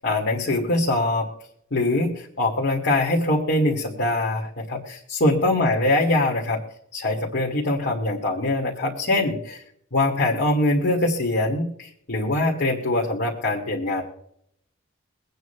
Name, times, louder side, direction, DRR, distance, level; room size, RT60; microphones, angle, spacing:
voice 1, 0.0-1.3 1.7-6.6 6.9-9.6 9.9-14.0, left 2 dB, 55° left, -2 dB, 2.1 m, -23 dB
24.0 x 9.2 x 2.2 m, 0.70 s
head